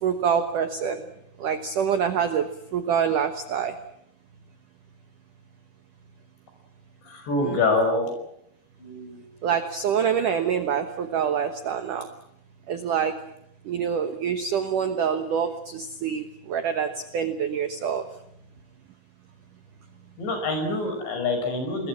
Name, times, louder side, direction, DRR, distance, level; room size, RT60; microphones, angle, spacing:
voice 1, 0.0-1.0 1.4-3.7 7.4-7.6 9.4-12.1 12.7-13.2 13.7-18.0, right 7 dB, 80° right, 9 dB, 1.8 m, -26 dB
voice 2, 7.1-8.2 8.8-9.5 20.2-21.9, left 2 dB, 60° left, 5 dB, 7.9 m, -26 dB
27.5 x 21.0 x 7.5 m, 0.75 s
omnidirectional pair, 5.7 m